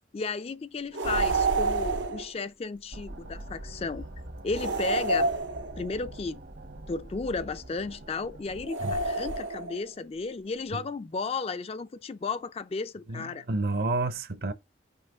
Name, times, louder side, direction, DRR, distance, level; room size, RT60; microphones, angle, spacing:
voice 1, 0.1-4.1 4.4-5.3 5.8-6.4 6.9-13.4, left 4 dB, 30° left, 0.4 m, -34 dB
sound 1, 0.9-2.3 4.5-6.0 8.7-9.8, right 2 dB, 90° right, 0.8 m, -28 dB
sound 2, 2.9-8.7, right 1 dB, 70° right, 1.3 m, -44 dB
voice 2, 13.1-14.5, right 2 dB, 55° right, 0.7 m, -30 dB
5.6 x 3.2 x 5.4 m
head